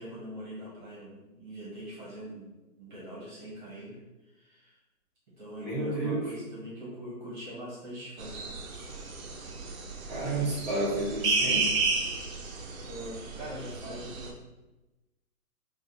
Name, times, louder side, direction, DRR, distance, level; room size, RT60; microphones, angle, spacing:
voice 1, 0.0-4.8 5.4-8.5 12.4-14.3, equal, 30° right, -7 dB, 1.2 m, -43 dB
voice 2, 5.6-6.4 10.0-11.8, right 2 dB, ahead, -19 dB, 1.2 m, -31 dB
sound 1, 8.2-14.3, right 3 dB, 60° right, 0.7 m, -32 dB
3.2 x 2.6 x 3.7 m, 1.1 s
hypercardioid pair, 165°, 45 cm